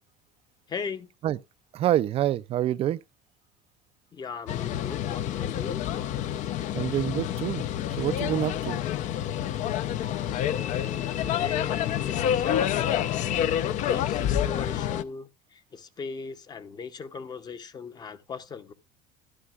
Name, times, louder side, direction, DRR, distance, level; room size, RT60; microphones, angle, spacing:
voice 1, 0.7-1.1 4.1-5.9 10.2-13.5 13.7-18.7, left 5 dB, 25° left, 0.9 m, -39 dB
voice 2, 1.7-3.0 6.7-7.6 8.0-8.8, right 12 dB, 40° right, 0.4 m, -26 dB
sound 1, 4.5-15.0, left 10 dB, 50° left, 0.7 m, -28 dB
12.5 x 11.0 x 2.4 m
cardioid pair, 145°, 16 cm